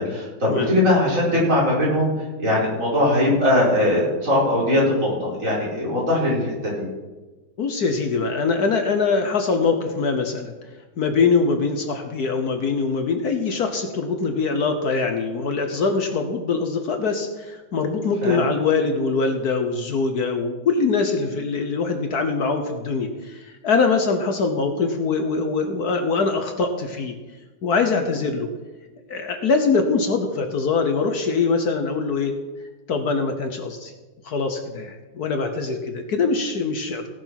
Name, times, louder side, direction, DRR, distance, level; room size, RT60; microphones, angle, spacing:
voice 1, 0.0-2.1 2.4-6.9 18.2-18.4, left 1 dB, 45° right, -6 dB, 5.3 m, -20 dB
voice 2, 7.6-10.5 11.0-27.1 27.6-28.5 29.1-32.3 32.9-33.9 34.2-37.1, left 4 dB, 60° left, 6 dB, 1.4 m, -23 dB
17.5 x 6.8 x 5.9 m, 1.2 s
omnidirectional pair, 2.0 m